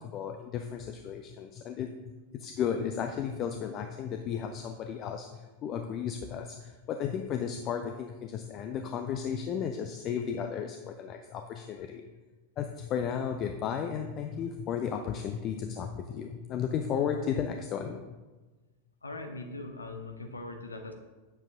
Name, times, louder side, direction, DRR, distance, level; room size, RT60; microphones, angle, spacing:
voice 1, 0.0-2.1 2.4-12.1 12.6-18.2, left 7 dB, 35° left, 5 dB, 0.6 m, -34 dB
voice 2, 19.0-20.9, left 2 dB, 80° left, 5 dB, 1.0 m, -40 dB
9.1 x 7.3 x 3.8 m, 1.2 s
figure-of-eight pair, 90°, 0 cm